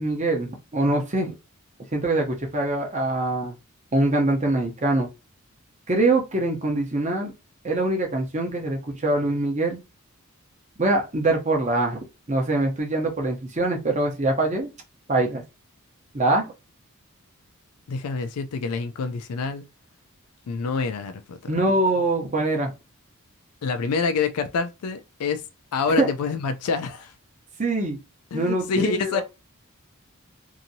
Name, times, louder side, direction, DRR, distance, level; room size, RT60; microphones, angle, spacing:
voice 1, 0.0-1.3 1.9-3.5 3.9-5.1 5.9-7.3 7.6-9.8 10.8-12.0 12.3-14.7 15.1-15.4 16.1-16.5 21.5-22.7 26.0-26.1 27.6-28.0 28.3-29.2, right 2 dB, 30° right, 0.8 m, -23 dB
voice 2, 17.9-19.6 20.5-21.6 23.6-25.4 25.7-27.1 28.3-29.2, left 5 dB, 85° left, 0.4 m, -27 dB
2.9 x 2.7 x 2.6 m
head